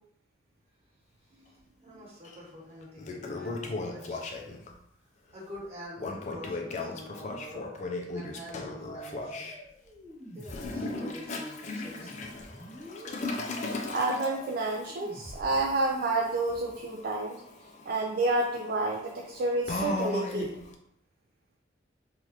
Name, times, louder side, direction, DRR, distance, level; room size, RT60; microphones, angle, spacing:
voice 1, 0.9-4.4 4.9-9.5 10.3-12.4 13.1-13.2, equal, 35° right, -6 dB, 1.2 m, -47 dB
Toilet flush, 2.2-2.4 2.8-4.7 6.0-9.5 10.4-20.7, left 2 dB, 40° left, 0.3 m, -37 dB
sound 1, 8.8-15.5, equal, 5° right, 0.9 m, -46 dB
voice 2, 13.9-17.4 17.9-20.5, right 2 dB, 55° right, -1 dB, 0.3 m, -29 dB
3.2 x 2.3 x 2.8 m, 0.72 s
head